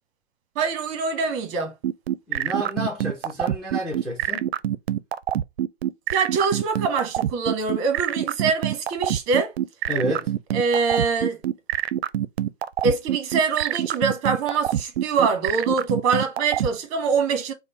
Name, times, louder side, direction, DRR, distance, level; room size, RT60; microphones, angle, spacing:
voice 1, 0.5-1.7 6.1-9.5 10.5-11.4 12.8-17.5, right 5 dB, 30° right, 1.0 m, -24 dB
sound 1, 1.8-16.7, right 11 dB, 60° right, 0.5 m, -24 dB
voice 2, 2.3-4.5 9.9-10.3, equal, ahead, 0.5 m, -29 dB
4.9 x 2.2 x 4.2 m
figure-of-eight pair, 120°, 36 cm